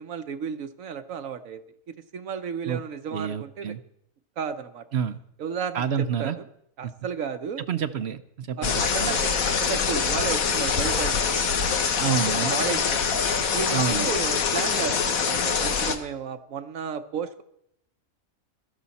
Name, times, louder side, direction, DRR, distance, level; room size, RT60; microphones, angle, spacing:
voice 1, 0.0-3.7 4.4-4.8 5.4-6.4 6.8-7.6 8.6-11.3 12.3-13.1 13.5-17.4, right 7 dB, 75° right, 9 dB, 1.2 m, -33 dB
voice 2, 3.1-3.8 4.9-5.2 5.7-6.4 6.8-6.9 7.7-9.2 12.0-12.5 13.7-14.1, right 7 dB, 60° right, 12 dB, 0.8 m, -28 dB
sound 1, 8.6-16.0, left 6 dB, 85° left, 1.5 m, -24 dB
16.5 x 13.5 x 4.2 m, 0.74 s
omnidirectional pair, 1.4 m